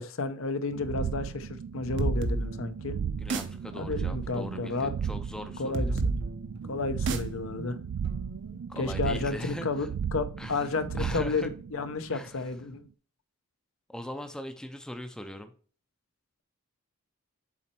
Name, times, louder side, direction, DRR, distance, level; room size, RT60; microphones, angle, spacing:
voice 1, 0.0-2.9 3.8-4.9 5.6-5.9 6.7-7.8 8.8-9.9 10.1-12.9, left 3 dB, 70° left, 0.7 m, -32 dB
sound 1, 0.7-12.5, right 7 dB, 75° right, 0.3 m, -35 dB
sound 2, 2.0-9.4, right 2 dB, 55° right, 0.7 m, -35 dB
voice 2, 3.2-6.0 8.7-9.9 10.4-11.5 12.1-12.4 13.9-15.5, left 1 dB, 5° left, 0.5 m, -40 dB
7.2 x 4.3 x 4.3 m
head